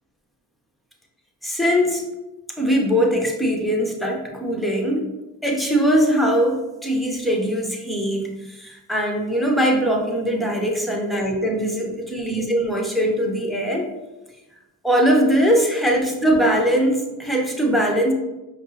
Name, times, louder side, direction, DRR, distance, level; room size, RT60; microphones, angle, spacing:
voice 1, 1.4-2.0 2.6-5.0 5.4-13.9 14.8-18.1, equal, ahead, 0 dB, 0.8 m, -21 dB
5.2 x 2.0 x 2.7 m, 1.0 s
supercardioid pair, 55°, 39 cm